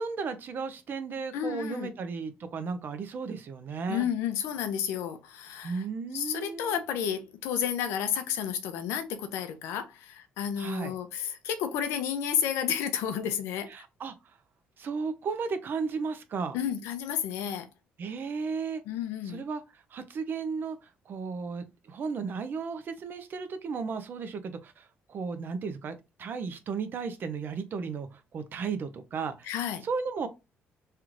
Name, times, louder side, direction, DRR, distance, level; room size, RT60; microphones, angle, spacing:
voice 1, 0.0-4.1 5.6-6.8 10.6-10.9 13.7-14.1 14.8-16.6 18.0-18.8 19.2-29.5 29.8-30.3, right 5 dB, 50° right, 0.6 m, -35 dB
voice 2, 1.3-1.9 3.9-5.8 6.1-13.7 16.5-17.7 18.9-19.4 29.4-29.8, left 9 dB, 85° left, 0.6 m, -31 dB
3.2 x 2.5 x 3.0 m
cardioid pair, 85°, 4 cm